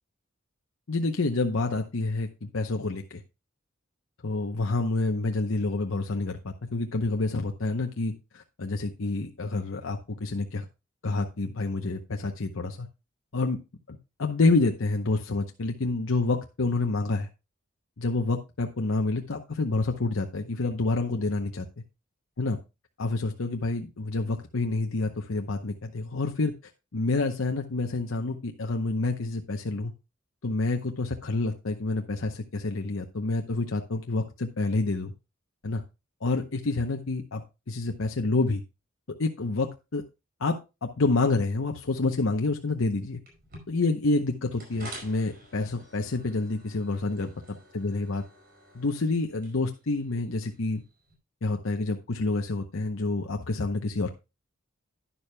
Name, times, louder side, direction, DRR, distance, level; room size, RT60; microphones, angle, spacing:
voice 1, 0.9-3.2 4.2-10.6 11.0-12.9 13.3-13.6 13.9-17.3 18.0-21.7 22.4-22.6 23.0-26.5 26.9-29.9 30.4-35.1 35.6-35.8 36.2-38.6 39.2-40.0 40.4-40.6 40.8-43.2 43.7-47.3 47.7-48.2 48.7-50.8 51.4-54.1, left 3 dB, 80° left, 4 dB, 0.8 m, -28 dB
sound 1, 43.2-51.1, right 1 dB, 50° right, 4.9 m, -49 dB
11.0 x 10.5 x 2.2 m, 0.27 s
head